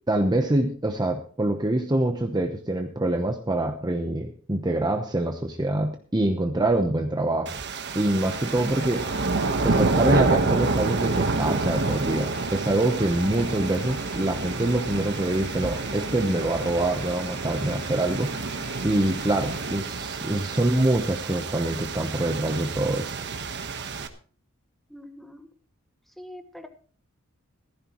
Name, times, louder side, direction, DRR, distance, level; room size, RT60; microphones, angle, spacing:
voice 1, 0.1-7.6 7.9-9.0 9.6-23.2, right 1 dB, 20° right, 5 dB, 0.9 m, -25 dB
sound 1, 7.5-24.1, right 3 dB, 55° right, 1.2 m, -28 dB
sound 2, 8.2-19.8, left 1 dB, 15° left, 3.9 m, -45 dB
voice 2, 24.9-25.5 26.1-26.7, left 1 dB, ahead, 6 dB, 1.4 m, -44 dB
16.0 x 14.0 x 3.1 m, 0.42 s
head